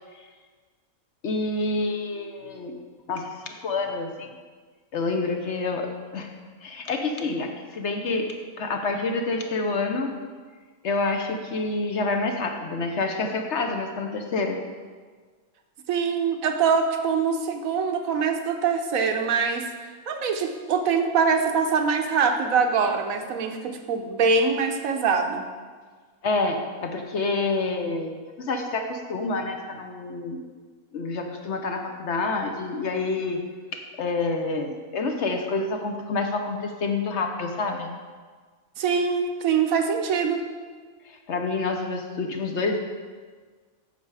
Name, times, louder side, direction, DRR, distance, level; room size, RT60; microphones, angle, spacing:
voice 1, 1.2-2.7 3.1-4.4 4.9-6.3 6.6-8.3 8.6-10.1 10.8-14.6 26.2-28.1 28.4-30.4 30.9-33.4 34.0-37.9 41.0-42.8, left 3 dB, 60° left, 4 dB, 0.9 m, -28 dB
voice 2, 15.9-19.7 20.1-25.5 38.8-40.5, right 5 dB, 75° right, 5 dB, 1.1 m, -23 dB
8.2 x 6.6 x 4.7 m, 1.5 s
omnidirectional pair, 1.5 m